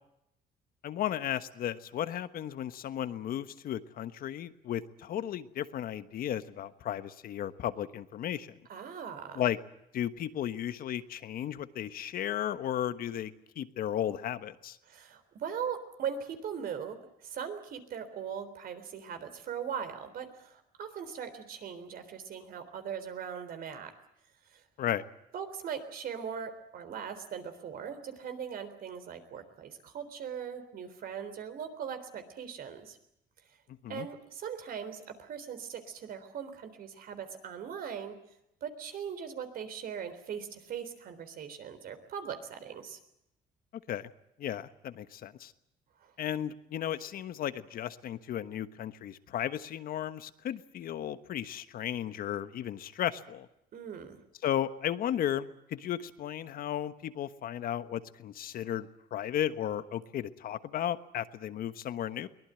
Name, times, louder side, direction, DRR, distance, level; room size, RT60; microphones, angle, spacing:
voice 1, 0.8-8.5 9.3-9.6 9.9-14.8 24.8-25.0 33.8-34.1 43.9-44.1 44.4-45.5 46.2-53.5 54.4-62.3, left 11 dB, 60° left, 12 dB, 1.3 m, -34 dB
voice 2, 8.7-9.4 14.8-23.9 24.5-24.6 25.3-33.0 33.9-38.2 38.6-43.0 46.0-46.1 53.7-54.2, right 7 dB, 60° right, 9 dB, 3.7 m, -40 dB
23.0 x 19.0 x 9.0 m, 0.82 s
cardioid pair, 110°, 17 cm